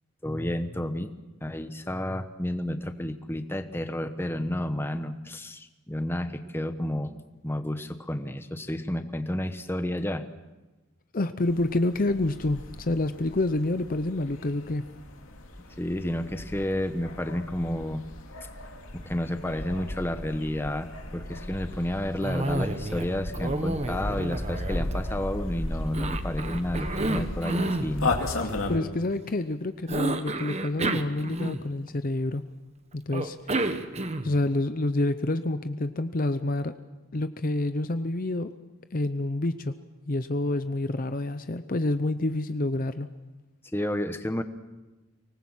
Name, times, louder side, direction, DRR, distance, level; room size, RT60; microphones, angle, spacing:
voice 1, 0.2-1.1 1.4-7.1 7.4-10.3 15.8-18.1 18.9-28.2 43.7-44.4, left 1 dB, 10° left, 9 dB, 1.1 m, -31 dB
voice 2, 11.1-14.8 28.7-32.4 32.9-33.7 34.2-36.7 37.1-38.5 38.9-39.7 40.1-43.1, left 2 dB, 40° left, 10 dB, 0.7 m, -28 dB
sound 1, 11.4-28.8, left 2 dB, 80° left, 2.6 m, -36 dB
Cough, 22.2-23.1 23.3-25.4 25.9-27.9 29.9-31.9 33.1-34.4, right 2 dB, 30° right, 1.1 m, -30 dB
24.5 x 19.5 x 7.4 m, 1.1 s
head